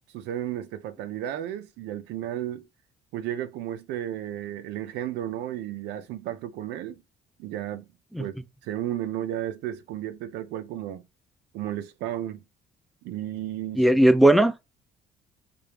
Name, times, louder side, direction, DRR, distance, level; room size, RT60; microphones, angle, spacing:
voice 1, 0.1-2.7 3.1-7.0 7.4-7.8 8.2-11.0 11.5-12.4 13.0-14.1, right 12 dB, 90° right, 0.6 m, -33 dB
voice 2, 13.8-14.6, right 1 dB, ahead, 0.5 m, -17 dB
5.1 x 2.9 x 3.4 m
cardioid pair, 110°, 17 cm